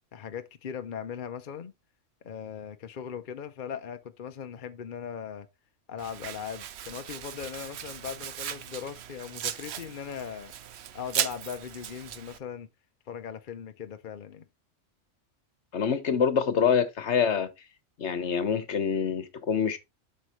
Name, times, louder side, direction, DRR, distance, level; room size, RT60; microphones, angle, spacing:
voice 1, 0.1-1.7 2.2-5.5 5.9-10.5 10.9-12.7 13.1-14.4, left 7 dB, 50° left, 0.8 m, -39 dB
Domestic sounds home sounds, 6.0-12.4, right 10 dB, 65° right, 0.9 m, -37 dB
voice 2, 15.7-17.5 18.0-19.8, left 7 dB, 65° left, 1.3 m, -26 dB
7.9 x 6.4 x 3.1 m
omnidirectional pair, 1.3 m